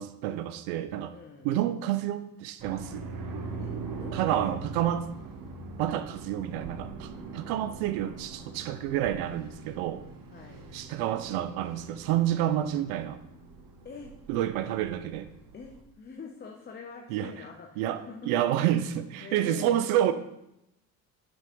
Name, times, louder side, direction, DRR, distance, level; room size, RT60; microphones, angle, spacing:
voice 1, 0.0-1.1 1.4-3.1 4.1-5.1 5.8-10.0 10.7-13.2 14.3-15.3 17.1-17.3 17.8-20.1, right 11 dB, 65° right, 11 dB, 0.6 m, -29 dB
voice 2, 1.1-1.5 3.6-4.6 10.3-10.7 13.8-14.1 15.5-18.3 19.2-19.8, left 5 dB, 20° left, 2 dB, 0.7 m, -45 dB
sound 1, 2.6-15.8, right 4 dB, 45° right, 0.9 m, -42 dB
6.8 x 5.3 x 3.0 m, 0.84 s
figure-of-eight pair, 55°, 48 cm